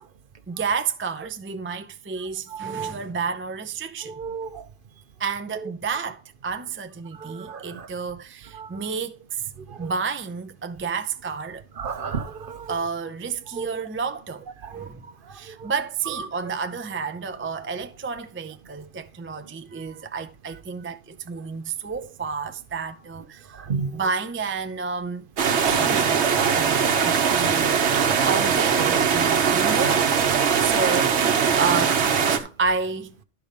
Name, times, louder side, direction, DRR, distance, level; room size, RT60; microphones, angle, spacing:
voice 1, 0.5-4.1 5.2-9.4 9.8-11.6 12.7-14.5 14.7-15.0 15.3-23.5 23.9-25.3 25.7-26.2 26.5-27.8 28.2-30.2 30.6-33.2, right 5 dB, 15° right, 0.4 m, -30 dB
voice 2, 2.6-2.9 4.2-4.6 7.3-7.7 8.6-8.7 9.8-9.9 11.8-12.7 13.6-13.8 14.7-14.9 23.7-23.9, right 5 dB, 55° right, 0.9 m, -31 dB
sound 1, 25.4-32.4, right 6 dB, 80° right, 1.2 m, -21 dB
12.0 x 4.6 x 5.1 m
omnidirectional pair, 1.1 m